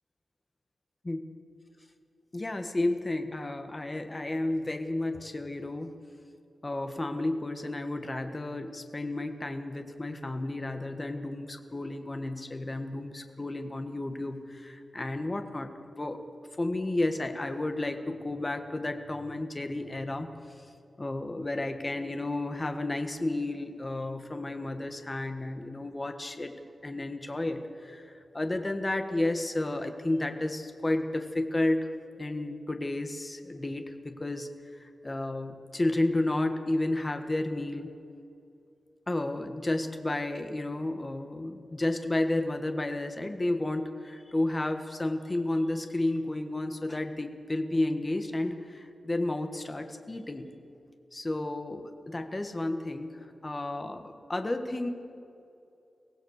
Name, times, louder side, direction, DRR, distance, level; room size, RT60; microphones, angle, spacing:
voice 1, 2.3-5.9 6.6-16.2 16.6-20.3 21.0-26.5 26.8-31.9 32.2-34.5 34.8-37.9 39.1-50.5 51.1-53.1 53.4-54.9, left 2 dB, 20° left, 6 dB, 1.5 m, -32 dB
23.5 x 17.0 x 6.5 m, 2.7 s
wide cardioid pair, 165°, 0 cm